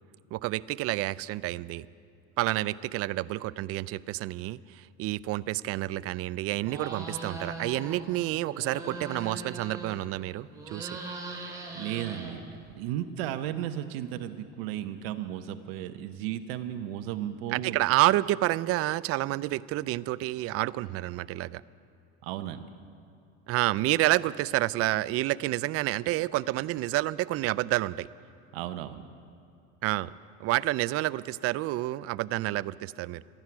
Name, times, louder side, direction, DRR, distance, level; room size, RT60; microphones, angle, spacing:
voice 1, 0.3-1.9 2.4-11.0 17.5-21.6 23.5-28.1 29.8-30.1 30.4-33.2, right 17 dB, 50° right, 18 dB, 0.4 m, -29 dB
sound 1, 6.6-8.0 8.4-10.2 10.5-12.7, right 3 dB, 10° right, 3.4 m, -40 dB
voice 2, 11.0-12.4 12.7-17.8 22.2-22.7 28.5-29.0, right 11 dB, 85° right, 9 dB, 0.8 m, -35 dB
13.0 x 10.5 x 9.6 m, 2.6 s
supercardioid pair, 100°, 30 cm